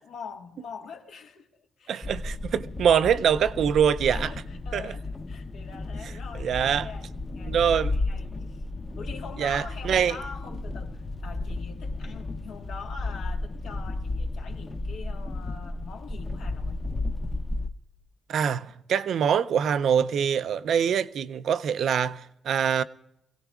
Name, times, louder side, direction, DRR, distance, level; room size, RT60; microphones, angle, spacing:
voice 1, 0.0-2.4 4.1-8.6 8.9-16.8, left 5 dB, 85° left, 1.5 m, -44 dB
voice 2, 1.9-4.3 4.7-4.9 6.4-6.9 7.5-7.9 9.4-10.2 18.3-22.8, right 8 dB, 65° right, 0.4 m, -24 dB
sound 1, 2.0-17.7, left 2 dB, 25° left, 0.7 m, -33 dB
25.5 x 17.0 x 2.3 m
cardioid pair, 120°, 0 cm